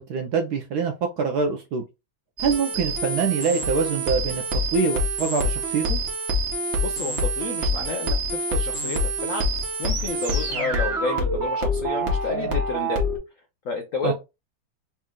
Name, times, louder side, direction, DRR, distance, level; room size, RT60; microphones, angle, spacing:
voice 1, 0.0-1.8 2.4-4.4 4.7-6.0 14.0-14.1, right 5 dB, 70° right, 1.0 m, -24 dB
sound 1, 2.4-13.2, equal, 45° right, 1.0 m, -26 dB
voice 2, 6.8-13.0 13.6-14.1, left 4 dB, 75° left, 0.7 m, -31 dB
4.3 x 2.4 x 3.6 m
omnidirectional pair, 2.1 m